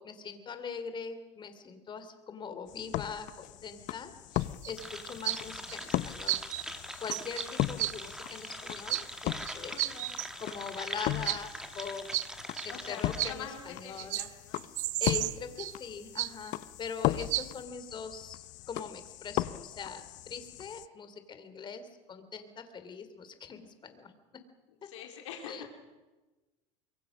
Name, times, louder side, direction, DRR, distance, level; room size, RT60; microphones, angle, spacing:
voice 1, 0.0-6.4 7.0-10.0 10.4-12.0 12.6-14.2 15.0-24.1 24.8-24.9 25.5-25.6, left 5 dB, 30° left, 10 dB, 3.3 m, -42 dB
sound 1, 2.7-20.9, left 16 dB, 55° left, 0.8 m, -38 dB
sound 2, 4.4-4.9 5.2-5.4 5.7-5.9 6.3-6.6 7.0-7.5 7.8-7.9 8.9-9.0 9.4-10.3 10.8-10.9 11.2-11.4 11.8-11.9 12.1-12.3 12.6-12.7 13.2-13.3 14.0-14.3 14.6-15.7 16.2-16.5 17.2-17.5, right 18 dB, 55° right, 0.7 m, -32 dB
sound 3, 4.8-13.3, right 1 dB, 5° right, 2.0 m, -43 dB
voice 2, 9.7-10.2 12.7-14.6 24.8-25.7, left 8 dB, 85° left, 2 dB, 3.9 m, -45 dB
25.0 x 22.5 x 6.3 m, 1.2 s
supercardioid pair, 110°, 15 cm